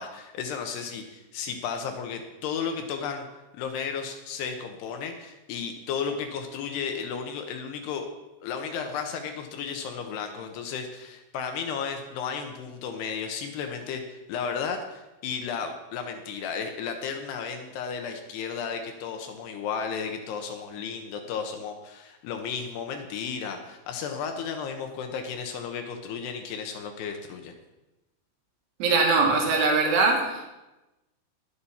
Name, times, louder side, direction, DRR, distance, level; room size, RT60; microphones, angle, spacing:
voice 1, 0.0-3.3 3.5-8.1 8.4-27.5, left 6 dB, 75° left, 5 dB, 2.6 m, -34 dB
voice 2, 28.8-30.5, right 3 dB, 70° right, 1 dB, 4.2 m, -22 dB
19.5 x 8.6 x 4.3 m, 1.0 s
omnidirectional pair, 5.8 m